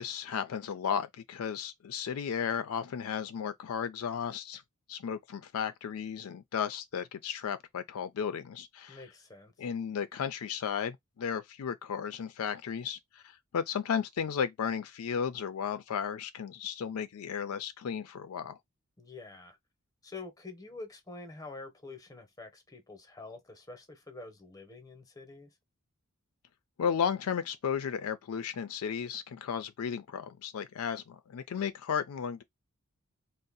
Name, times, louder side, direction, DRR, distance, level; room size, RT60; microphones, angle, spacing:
voice 1, 0.0-4.6 4.9-9.0 9.6-13.2 13.5-18.6 26.8-32.4, left 7 dB, 80° left, 0.4 m, -34 dB
voice 2, 8.9-9.5 19.0-19.6 20.0-25.5, left 3 dB, 15° left, 0.8 m, -47 dB
2.6 x 2.0 x 3.8 m
head